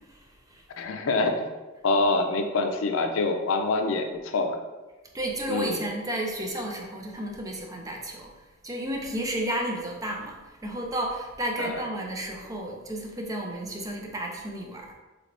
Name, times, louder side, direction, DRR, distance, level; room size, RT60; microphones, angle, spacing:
voice 1, 0.8-1.5 1.8-4.6 5.5-5.8 11.6-11.8, left 3 dB, 75° left, 5 dB, 0.4 m, -26 dB
voice 2, 5.1-8.3 8.6-14.9, right 1 dB, 15° right, 0 dB, 0.5 m, -32 dB
3.3 x 3.3 x 2.5 m, 1.2 s
head